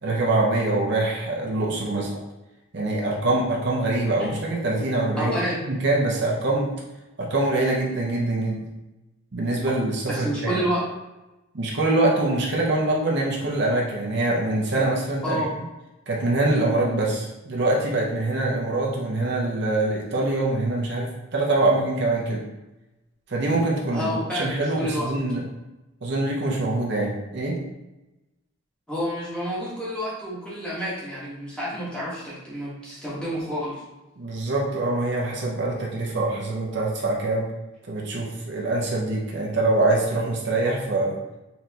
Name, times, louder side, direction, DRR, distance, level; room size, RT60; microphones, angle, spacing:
voice 1, 0.0-2.2 2.7-5.4 5.7-6.7 7.2-8.7 9.3-10.6 11.5-15.4 16.1-22.4 23.3-25.4 26.0-27.6 34.2-37.5 37.9-41.2, right 2 dB, 55° right, -3 dB, 0.6 m, -24 dB
voice 2, 5.2-5.6 10.1-10.8 15.2-15.5 23.9-25.1 28.9-33.8, equal, 5° left, -8 dB, 1.1 m, -29 dB
4.2 x 3.3 x 2.8 m, 1.0 s
head